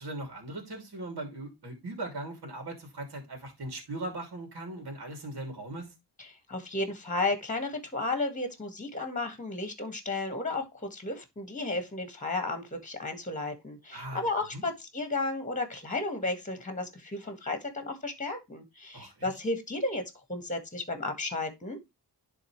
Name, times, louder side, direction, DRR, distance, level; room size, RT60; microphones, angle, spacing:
voice 1, 0.0-5.9 13.9-14.3 14.5-14.6 18.9-19.4, right 2 dB, 60° right, 2.7 m, -39 dB
voice 2, 6.2-20.0 20.3-21.8, left 2 dB, 20° left, 1.8 m, -33 dB
10.5 x 3.8 x 3.1 m
wide cardioid pair, 85°, 42 cm